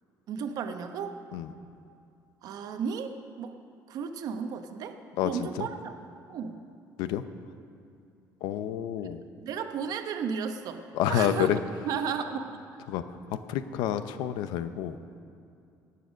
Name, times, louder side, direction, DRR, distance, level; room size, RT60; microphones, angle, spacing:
voice 1, 0.3-1.2 2.4-3.1 3.4-3.6 3.9-5.0 5.2-6.6 8.8-8.9 9.4-10.8 11.1-11.5 11.8-12.6, right 6 dB, 60° right, 7 dB, 0.9 m, -34 dB
voice 2, 5.2-5.7 7.0-7.2 8.4-9.2 10.9-11.6 12.9-13.0 13.5-15.0, left 11 dB, 85° left, 11 dB, 0.7 m, -29 dB
18.5 x 6.9 x 6.3 m, 2.5 s
cardioid pair, 115°, 7 cm